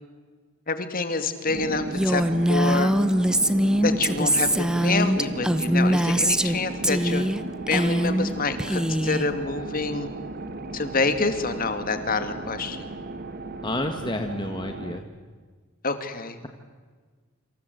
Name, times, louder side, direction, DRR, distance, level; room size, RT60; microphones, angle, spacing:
voice 1, 0.7-2.2 2.5-2.9 3.8-7.3 7.7-10.1 10.7-12.9 15.8-16.4, left 3 dB, 40° left, 9 dB, 2.4 m, -27 dB
sound 1, 1.5-15.0, right 2 dB, 45° right, 1.5 m, -35 dB
Female speech woman speaking, 1.9-6.6 6.8-7.4 7.7-8.3 8.6-9.2, equal, 5° right, 0.9 m, -22 dB
voice 2, 13.6-15.0, left 1 dB, 20° left, 5 dB, 1.6 m, -29 dB
27.5 x 26.5 x 8.0 m, 1.5 s
head